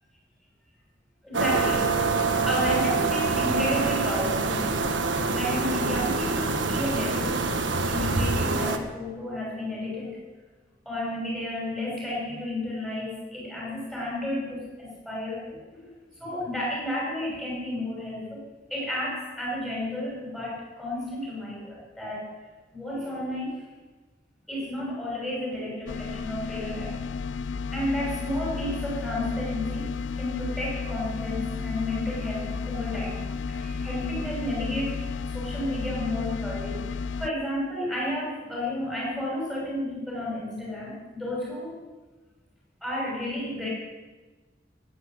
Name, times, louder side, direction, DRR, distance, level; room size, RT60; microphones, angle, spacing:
voice 1, 1.2-5.0 5.2-7.5 7.9-10.2 10.8-15.9 16.2-18.4 18.7-22.3 22.7-23.6 24.5-27.0 27.7-35.0 35.3-41.8 42.8-43.7, left 1 dB, 5° left, -5 dB, 6.6 m, -32 dB
sound 1, 1.3-8.8, right 3 dB, 85° right, 1.4 m, -25 dB
sound 2, 25.9-37.3, left 5 dB, 90° left, 0.5 m, -32 dB
18.0 x 9.4 x 8.0 m, 1.3 s
head